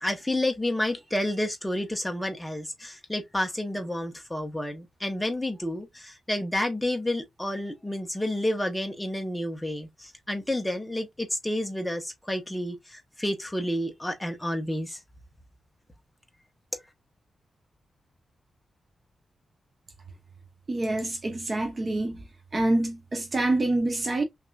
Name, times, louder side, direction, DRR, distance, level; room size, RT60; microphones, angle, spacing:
voice 1, 0.0-15.0, left 1 dB, 5° left, 1.1 m, -30 dB
voice 2, 20.7-22.2 22.5-24.2, right 2 dB, 25° right, 0.8 m, -26 dB
6.0 x 2.9 x 2.4 m
wide cardioid pair, 165°, 0 cm